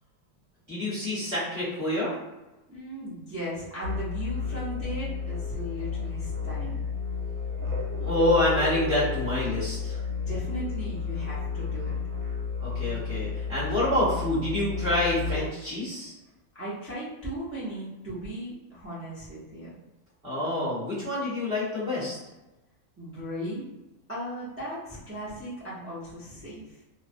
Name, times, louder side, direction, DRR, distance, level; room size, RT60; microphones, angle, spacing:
voice 1, 0.7-2.2 8.0-10.0 12.6-16.1 20.2-22.2, left 1 dB, 5° right, -10 dB, 0.9 m, -27 dB
voice 2, 2.7-6.8 10.1-11.9 16.5-19.7 23.0-23.7 24.1-26.8, right 1 dB, 20° right, -9 dB, 0.4 m, -37 dB
sound 1, 3.8-15.5, left 5 dB, 75° right, 1.0 m, -32 dB
2.5 x 2.0 x 2.5 m, 1.0 s
omnidirectional pair, 1.4 m